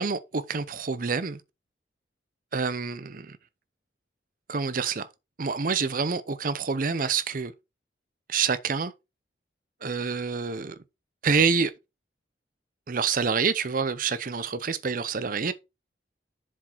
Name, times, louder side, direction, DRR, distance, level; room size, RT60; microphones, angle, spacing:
voice 1, 0.0-1.4 2.5-3.4 4.5-5.1 5.4-7.5 8.3-8.9 9.8-10.8 11.2-11.7 12.9-15.5, right 5 dB, 50° right, 0.6 m, -27 dB
7.3 x 4.9 x 4.5 m
head